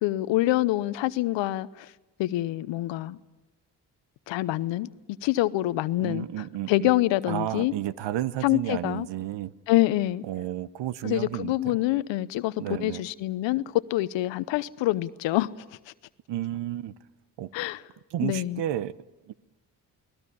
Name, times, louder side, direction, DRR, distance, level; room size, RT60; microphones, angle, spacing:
voice 1, 0.0-1.9 2.2-3.2 4.3-4.9 5.2-6.3 6.7-7.7 8.4-9.1 9.7-10.2 11.0-15.5 17.5-17.8 18.2-18.6, left 16 dB, 85° left, 0.9 m, -26 dB
voice 2, 6.0-6.9 7.3-9.5 10.2-11.8 12.6-13.0 16.3-16.9 17.4-17.5 18.1-18.9 19.3-19.4, right 13 dB, 75° right, 1.0 m, -32 dB
29.5 x 19.5 x 8.5 m
supercardioid pair, 60°, 43 cm